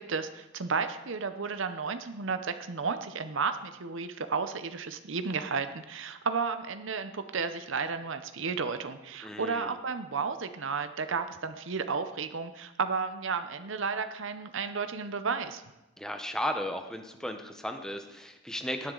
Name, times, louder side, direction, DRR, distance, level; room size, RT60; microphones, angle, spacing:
voice 1, 0.0-15.6, right 5 dB, 70° right, 9 dB, 0.7 m, -33 dB
voice 2, 9.2-9.8 16.0-18.9, equal, 5° left, 5 dB, 0.8 m, -35 dB
18.0 x 10.0 x 3.9 m, 0.98 s
head